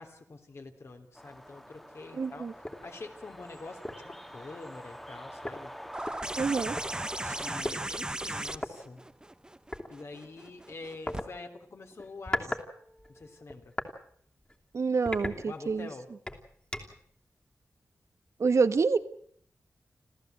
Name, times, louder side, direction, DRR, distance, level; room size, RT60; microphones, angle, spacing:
voice 1, 0.0-5.7 7.4-9.0 9.9-12.6 13.1-13.7 15.4-16.1, left 3 dB, 55° left, 5 dB, 3.2 m, -46 dB
sound 1, 1.1-7.6, equal, 5° left, 1.6 m, -46 dB
voice 2, 2.2-2.5 6.4-6.8 7.3-7.4 14.7-15.9 18.4-19.0, right 4 dB, 65° right, 10 dB, 1.3 m, -27 dB
sound 2, 2.6-2.8 3.3-3.4 3.8-4.1 5.1-5.2 5.4-6.9 7.6-7.8 8.6-8.7 9.7-9.9 11.1-11.3 12.0-12.7 13.0-14.0 14.4-14.6 15.1-15.9 16.3-17.1, left 1 dB, 20° left, 2.8 m, -37 dB
sound 3, 5.9-11.2 12.6-12.7, right 1 dB, 15° right, 0.9 m, -37 dB
27.5 x 15.0 x 7.9 m, 0.64 s
wide cardioid pair, 100°, 5 cm